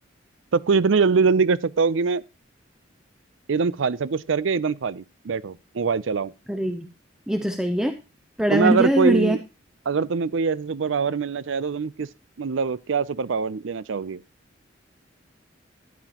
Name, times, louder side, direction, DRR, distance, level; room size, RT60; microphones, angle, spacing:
voice 1, 0.5-2.2 3.5-6.3 8.5-9.4 9.9-12.1 12.4-14.2, right 5 dB, 85° right, 0.5 m, -23 dB
voice 2, 6.5-6.9 7.3-7.9 8.4-9.4, right 1 dB, 5° right, 0.6 m, -22 dB
13.0 x 9.5 x 3.0 m
head